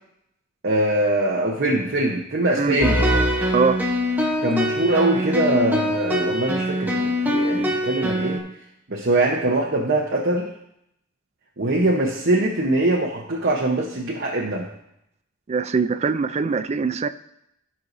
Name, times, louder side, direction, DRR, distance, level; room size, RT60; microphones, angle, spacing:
voice 1, 0.6-3.0 4.4-8.4 8.9-10.5 11.6-14.7, right 1 dB, 50° right, -2 dB, 0.9 m, -22 dB
sound 1, 2.8-8.4, equal, 10° right, 0.8 m, -23 dB
voice 2, 15.5-17.1, right 4 dB, 30° right, 11 dB, 0.3 m, -22 dB
14.0 x 5.6 x 2.6 m, 0.78 s
head